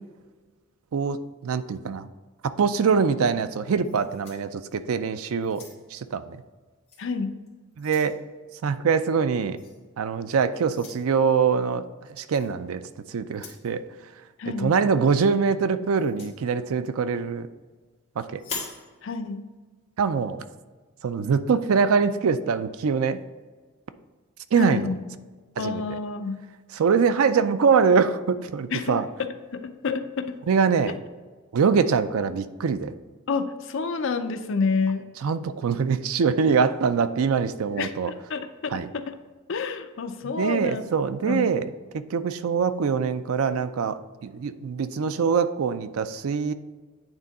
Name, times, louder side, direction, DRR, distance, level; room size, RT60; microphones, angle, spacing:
voice 1, 0.9-2.1 2.4-5.6 5.9-6.4 7.8-8.2 8.6-9.6 10.0-11.8 12.2-12.8 13.1-13.8 14.5-17.5 18.2-18.4 20.0-20.4 21.0-23.2 24.5-24.9 25.6-25.8 26.7-29.1 30.5-30.9 31.5-32.9 35.2-38.1 38.7-38.9 40.2-41.6 41.9-46.5, right 5 dB, 75° right, 12 dB, 0.4 m, -23 dB
sound 1, 3.8-5.0 5.4-6.1 6.9-7.1 7.5-8.2 9.6-9.8 10.7-11.0 12.3-12.5 13.3-13.7 15.9-16.4 18.4-18.8, left 4 dB, 30° left, 1.7 m, -40 dB
voice 2, 7.0-7.3 14.4-14.7 19.0-19.4 24.6-25.0 25.6-26.4 28.7-30.4 33.3-35.0 37.8-39.2 39.5-40.8 41.3-41.5, left 4 dB, 60° left, 8 dB, 0.5 m, -29 dB
9.0 x 3.6 x 4.1 m, 1.4 s
head